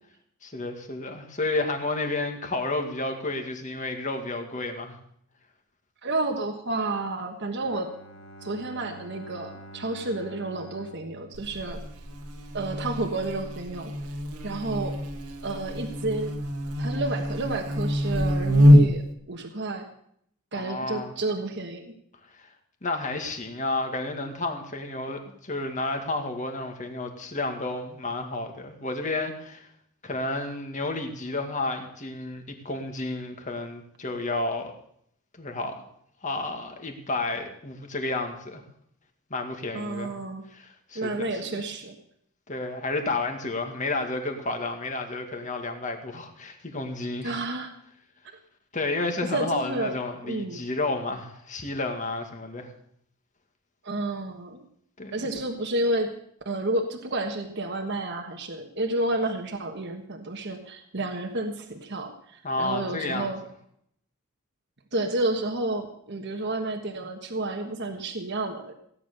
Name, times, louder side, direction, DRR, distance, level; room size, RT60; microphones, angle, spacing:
voice 1, 0.4-5.0 20.5-21.1 22.3-22.5 22.8-29.7 30.0-34.7 35.4-35.8 36.2-38.6 39.3-40.1 40.5-41.6 42.5-47.4 48.7-52.7 55.0-55.3 62.4-63.3, left 2 dB, 35° left, 4 dB, 2.1 m, -31 dB
voice 2, 6.0-7.9 8.4-11.8 12.5-13.9 14.4-15.0 15.4-16.3 16.8-19.9 20.5-21.9 39.7-40.4 40.9-41.9 47.2-47.7 49.2-49.9 50.2-50.7 53.8-54.6 55.1-56.1 56.4-63.4 64.9-68.7, right 2 dB, 50° right, 3 dB, 1.4 m, -30 dB
Bowed string instrument, 7.6-12.4, right 1 dB, 60° left, 1.6 m, -47 dB
Buzz, 11.3-19.1, equal, 90° right, 2.0 m, -24 dB
17.0 x 10.0 x 6.8 m, 0.68 s
head